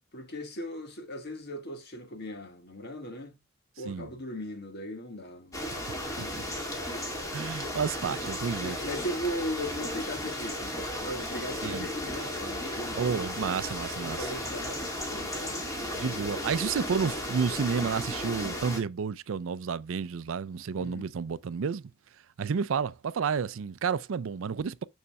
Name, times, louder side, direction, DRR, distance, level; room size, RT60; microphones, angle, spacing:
voice 1, 0.1-3.3 3.8-5.6 6.2-6.5 8.1-8.2 8.6-13.1 14.0-16.3 20.8-21.1, equal, 55° left, 1.7 m, -38 dB
sound 1, 5.5-18.8, left 1 dB, 15° left, 1.9 m, -35 dB
voice 2, 7.3-8.8 11.6-11.9 12.9-14.3 15.9-21.8 22.4-24.8, right 6 dB, 75° right, 0.4 m, -31 dB
6.8 x 6.4 x 2.3 m
head